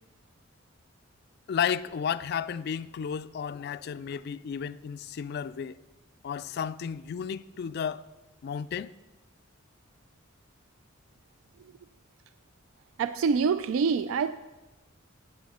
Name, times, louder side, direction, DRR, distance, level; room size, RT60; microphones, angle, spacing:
voice 1, 1.5-5.8 6.2-8.0 8.4-8.9, left 7 dB, 50° left, 0.3 m, -33 dB
voice 2, 13.0-14.3, right 5 dB, 75° right, 0.3 m, -26 dB
12.0 x 8.4 x 4.3 m
head